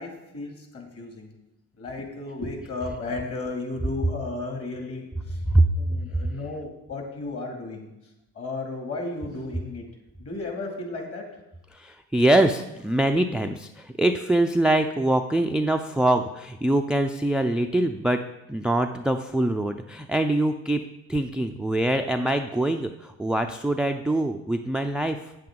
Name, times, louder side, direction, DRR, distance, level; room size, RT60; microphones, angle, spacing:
voice 1, 0.0-1.3 1.8-5.4 5.7-7.9 8.3-9.8 10.2-11.2, left 3 dB, 45° left, 2 dB, 2.4 m, -34 dB
voice 2, 11.7-18.2 18.5-25.2, right 1 dB, 5° right, 7 dB, 0.3 m, -24 dB
8.3 x 7.7 x 3.7 m, 0.94 s
supercardioid pair, 80°, 33 cm